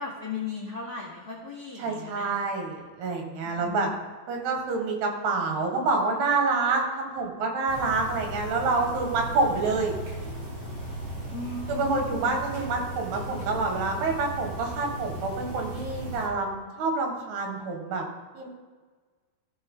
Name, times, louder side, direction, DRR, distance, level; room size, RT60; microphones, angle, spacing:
voice 1, 0.0-2.3 3.4-4.0 11.3-12.3, left 4 dB, 90° left, -7 dB, 0.8 m, -36 dB
voice 2, 1.8-3.9 4.3-9.9 11.7-18.1 18.4-18.5, right 3 dB, 75° right, 2 dB, 3.7 m, -27 dB
sound 1, 7.7-16.3, right 1 dB, 45° right, 3.8 m, -37 dB
15.5 x 5.3 x 3.8 m, 1.4 s
omnidirectional pair, 4.8 m